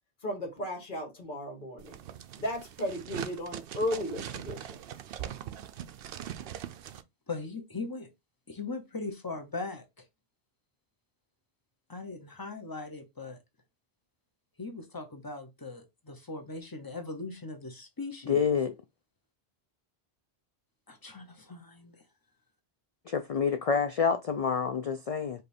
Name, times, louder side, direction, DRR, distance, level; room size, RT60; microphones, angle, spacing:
voice 1, 0.2-2.0 2.4-4.8, left 1 dB, 50° left, 1.5 m, -35 dB
sound 1, 1.8-7.0, right 10 dB, 65° right, 0.7 m, -41 dB
voice 2, 7.3-8.1 8.5-10.0 11.9-13.4 14.6-18.4 20.9-22.0, left 3 dB, 20° left, 0.8 m, -39 dB
voice 3, 18.3-18.7 23.1-25.4, left 6 dB, 65° left, 0.3 m, -28 dB
5.1 x 2.4 x 4.3 m
omnidirectional pair, 1.1 m